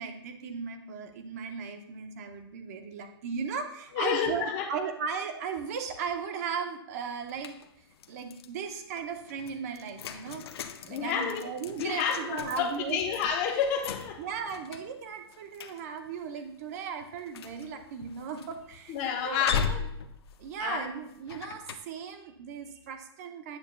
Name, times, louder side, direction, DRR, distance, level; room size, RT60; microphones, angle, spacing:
voice 1, 0.0-7.5 8.1-13.0 14.2-18.9 19.2-19.8 20.4-23.6, right 6 dB, 35° right, 6 dB, 0.8 m, -37 dB
voice 2, 3.9-4.7 10.8-11.4 11.8-14.2 18.9-19.6 20.6-20.8, left 7 dB, 25° left, 3 dB, 0.9 m, -29 dB
sound 1, 7.2-8.5 9.0-21.8, left 7 dB, 65° left, 0.6 m, -39 dB
8.9 x 6.9 x 2.3 m, 0.76 s
hypercardioid pair, 170°, 14 cm